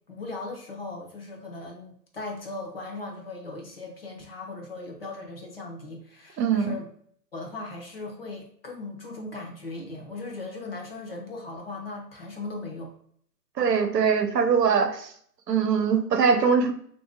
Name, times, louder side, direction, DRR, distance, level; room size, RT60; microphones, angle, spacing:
voice 1, 0.1-6.9 7.3-12.9, left 2 dB, 40° left, 1 dB, 0.6 m, -38 dB
voice 2, 6.4-6.7 13.6-15.1 15.5-16.7, right 6 dB, 80° right, 6 dB, 0.8 m, -22 dB
3.2 x 2.6 x 3.5 m, 0.62 s
hypercardioid pair, 155°, 48 cm